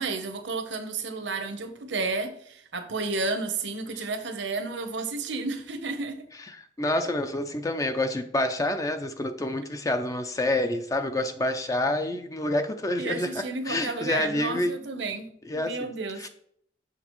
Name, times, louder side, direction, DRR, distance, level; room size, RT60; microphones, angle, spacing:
voice 1, 0.0-6.2 13.0-15.3 15.5-16.2, right 3 dB, 75° right, 0.9 m, -32 dB
voice 2, 6.3-14.8 15.4-15.9 16.2-16.3, left 1 dB, 20° left, 0.4 m, -28 dB
6.0 x 6.0 x 3.0 m
head